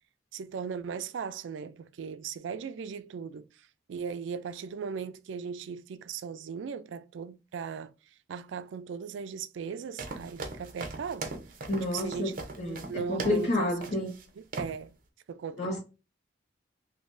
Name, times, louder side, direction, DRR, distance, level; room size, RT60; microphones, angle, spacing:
voice 1, 0.3-7.9 8.3-11.3 11.9-12.3 12.6-13.9 14.6-15.0 15.3-15.8, right 6 dB, 80° right, 0.3 m, -38 dB
sound 1, 10.0-13.5 13.8-14.2 14.5-14.8, right 3 dB, 45° right, 0.7 m, -39 dB
voice 2, 11.7-14.1 15.6-15.8, left 1 dB, 60° left, 1.1 m, -30 dB
3.7 x 2.7 x 2.6 m
head